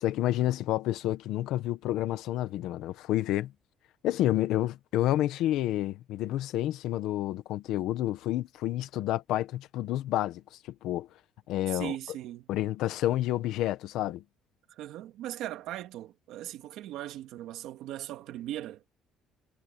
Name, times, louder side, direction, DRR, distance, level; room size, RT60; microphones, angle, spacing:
voice 1, 0.0-3.5 4.0-11.1 11.5-12.0 12.5-14.2, left 14 dB, 70° left, 1.3 m, -29 dB
voice 2, 11.7-12.5 14.7-18.8, right 13 dB, 70° right, 2.2 m, -39 dB
cardioid pair, 175°, 0 cm